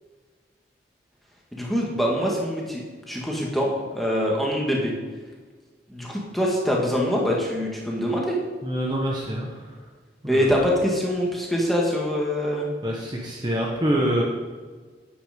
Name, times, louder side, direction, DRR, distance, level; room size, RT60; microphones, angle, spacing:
voice 1, 1.5-4.9 5.9-8.4 10.3-12.7, equal, ahead, -3 dB, 1.9 m, -24 dB
voice 2, 8.6-9.8 10.2-10.5 12.8-14.2, right 1 dB, 25° right, -2 dB, 1.2 m, -26 dB
10.0 x 8.3 x 5.2 m, 1.4 s
head